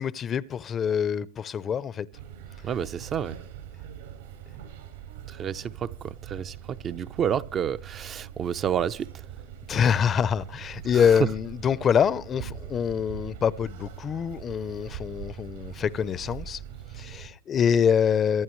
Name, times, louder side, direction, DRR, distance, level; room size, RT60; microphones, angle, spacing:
voice 1, 0.0-2.1 9.7-16.6 16.9-18.4, left 7 dB, 30° left, 0.7 m, -25 dB
sound 1, 2.1-17.3, right 9 dB, 80° right, 5.1 m, -42 dB
voice 2, 2.6-3.4 5.3-9.1, right 8 dB, 30° right, 0.6 m, -30 dB
24.0 x 11.0 x 3.2 m
hypercardioid pair, 115°, 0 cm